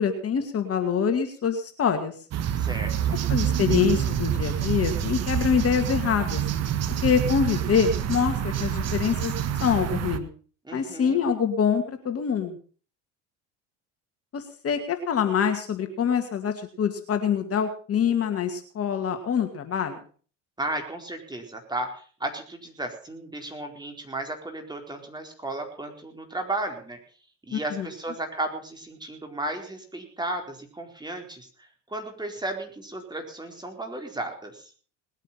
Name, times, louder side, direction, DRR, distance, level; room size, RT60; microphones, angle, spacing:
voice 1, 0.0-2.1 3.3-6.4 7.0-9.3 9.6-10.3 10.7-12.6 14.3-20.0 27.5-27.9, left 7 dB, 40° left, 7 dB, 2.2 m, -25 dB
sound 1, 2.3-10.2, right 9 dB, 45° right, 1.5 m, -27 dB
voice 2, 2.5-3.2 10.6-11.2 20.6-27.0 27.5-34.7, right 2 dB, 10° right, 3 dB, 4.4 m, -34 dB
20.0 x 9.1 x 5.7 m, 0.42 s
supercardioid pair, 85°, 36 cm